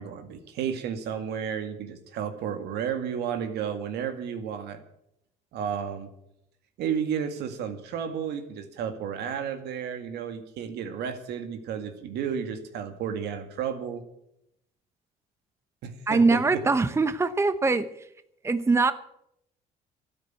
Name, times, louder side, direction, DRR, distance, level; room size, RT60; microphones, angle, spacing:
voice 1, 0.0-4.8 5.5-6.1 6.8-14.0 15.8-16.6, right 8 dB, 80° right, 8 dB, 2.0 m, -32 dB
voice 2, 16.1-17.9 18.4-18.9, right 3 dB, 15° right, 12 dB, 0.8 m, -22 dB
12.5 x 9.9 x 9.1 m, 0.79 s
cardioid pair, 110°, 17 cm